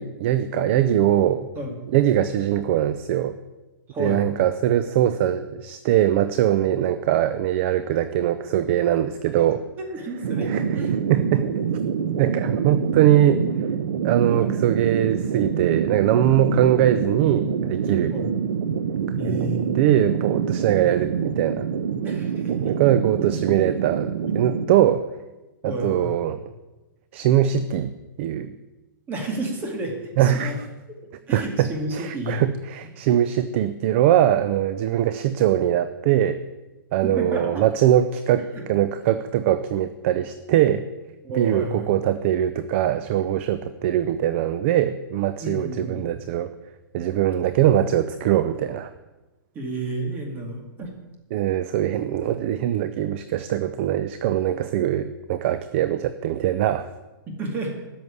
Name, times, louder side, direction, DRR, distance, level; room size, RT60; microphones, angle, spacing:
voice 1, 0.0-1.5 1.9-3.4 4.0-9.6 10.5-10.6 10.9-11.5 12.2-13.5 14.0-18.2 19.2-21.7 22.5-25.0 25.6-26.4 27.1-27.9 28.2-28.5 30.2-30.5 31.3-36.4 36.9-40.9 41.3-46.5 46.9-48.9 51.3-56.9, right 11 dB, 35° right, 12 dB, 0.5 m, -22 dB
voice 2, 3.9-4.3 9.8-11.0 14.3-14.5 18.1-18.3 19.2-19.7 22.0-22.7 23.2-23.3 24.3-24.4 25.6-26.3 29.1-30.6 31.3-32.4 37.0-37.6 38.5-38.6 41.2-41.9 45.4-46.1 49.5-50.9 57.3-57.8, right 1 dB, 15° right, 2 dB, 2.2 m, -31 dB
sound 1, 10.2-24.7, right 7 dB, 70° right, 1.1 m, -26 dB
13.0 x 6.3 x 9.7 m, 1.1 s
hypercardioid pair, 165°, 11 cm